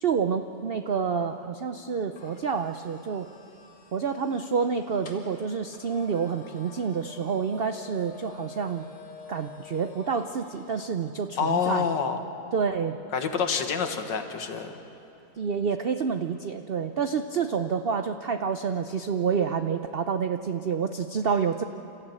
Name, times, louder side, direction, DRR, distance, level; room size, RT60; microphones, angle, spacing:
voice 1, 0.0-3.3 3.9-8.9 9.3-11.8 12.5-13.0 15.4-21.6, right 6 dB, 90° right, 8 dB, 0.5 m, -28 dB
sound 1, 2.1-10.9, left 5 dB, 60° left, 2.4 m, -49 dB
voice 2, 11.4-12.2 13.1-14.8, left 6 dB, 85° left, 6 dB, 2.0 m, -27 dB
28.0 x 14.0 x 9.0 m, 2.9 s
omnidirectional pair, 1.9 m